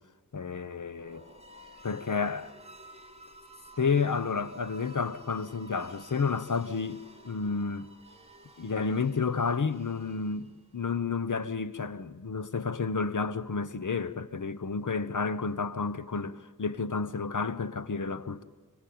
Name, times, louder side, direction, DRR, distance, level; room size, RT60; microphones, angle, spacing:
voice 1, 0.3-1.2 1.8-2.5 3.8-7.9 8.6-18.4, left 5 dB, 55° left, 1.1 m, -31 dB
sound 1, 0.9-10.8, right 1 dB, 15° right, 2.8 m, -52 dB
26.0 x 25.0 x 8.7 m
wide cardioid pair, 95°, 36 cm